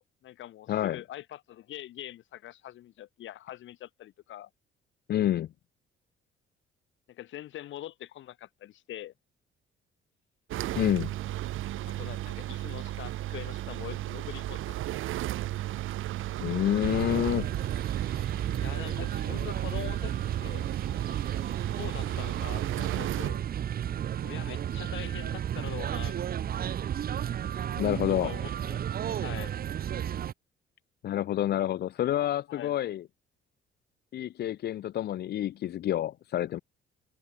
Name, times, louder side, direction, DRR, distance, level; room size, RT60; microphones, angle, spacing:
voice 1, 0.0-4.5 7.1-9.1 11.9-14.8 18.0-18.3 18.6-20.7 21.0-21.2 21.7-23.5 24.2-26.4 28.1-29.5 32.5-32.8, left 13 dB, 70° left, 5.8 m, -43 dB
voice 2, 0.7-1.0 5.1-5.5 10.7-11.1 16.4-17.5 27.8-28.3 31.0-33.0 34.1-36.6, left 12 dB, 55° left, 0.8 m, -28 dB
sound 1, 10.5-23.3, right 15 dB, 90° right, 2.2 m, -34 dB
sound 2, 16.8-30.3, right 10 dB, 50° right, 2.1 m, -33 dB
cardioid pair, 160°, 20 cm